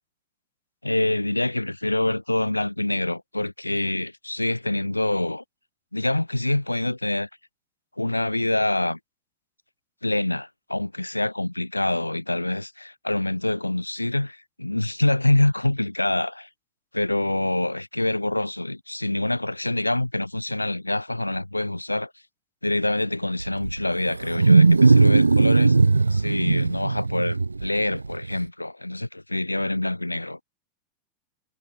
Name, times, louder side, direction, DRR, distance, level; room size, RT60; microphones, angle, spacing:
voice 1, 0.8-5.4 5.9-7.3 8.0-9.0 10.0-16.5 16.9-22.1 22.6-25.8 26.1-30.4, left 1 dB, 85° left, 8.0 m, -25 dB
Wild animals, 23.4-28.4, right 3 dB, 80° right, 1.9 m, -18 dB
figure-of-eight pair, 90°, 0 cm